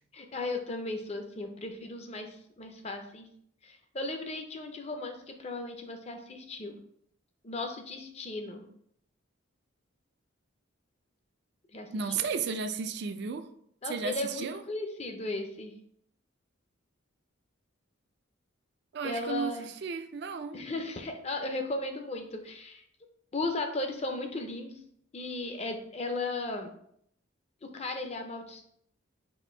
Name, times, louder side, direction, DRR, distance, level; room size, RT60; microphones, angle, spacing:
voice 1, 0.1-3.3 3.6-6.7 7.4-8.7 11.7-11.9 13.8-15.7 19.0-19.7 20.5-22.8 23.3-24.8 25.1-26.7 27.6-28.6, left 2 dB, 30° left, 0.5 m, -36 dB
voice 2, 11.9-13.5 13.9-14.6 18.9-20.6, right 5 dB, 55° right, 0.4 m, -34 dB
4.3 x 2.6 x 4.3 m
head